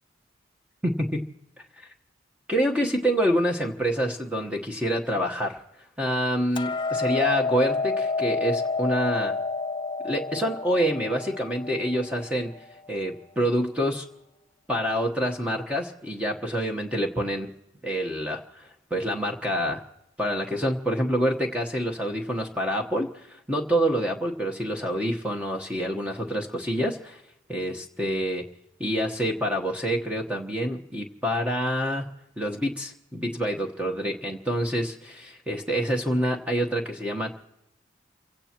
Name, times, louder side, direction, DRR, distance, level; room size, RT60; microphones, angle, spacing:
voice 1, 0.8-1.3 1.8-1.9 2.5-5.6 6.0-9.3 10.0-12.5 12.9-14.1 14.7-17.5 17.8-19.8 20.2-27.2 27.5-28.4 28.8-32.0 32.4-37.4, equal, 5° right, 1 dB, 1.1 m, -27 dB
Hammer, 6.6-12.8, left 3 dB, 25° left, 0.6 m, -29 dB
29.0 x 17.0 x 3.0 m, 0.84 s
head